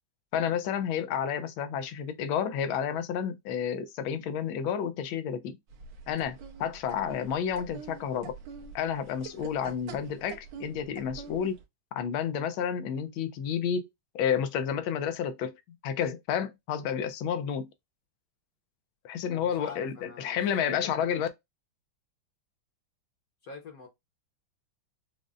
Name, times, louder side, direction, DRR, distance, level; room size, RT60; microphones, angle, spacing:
voice 1, 0.3-5.6 6.1-8.4 8.7-11.6 11.9-13.9 14.1-15.6 15.8-17.7 19.0-21.3, left 8 dB, 85° left, 1.4 m, -30 dB
sound 1, 5.7-11.6, right 6 dB, 80° right, 1.6 m, -46 dB
voice 2, 19.3-21.0 23.4-23.9, left 4 dB, 60° left, 1.1 m, -45 dB
5.0 x 2.1 x 2.4 m
omnidirectional pair, 2.2 m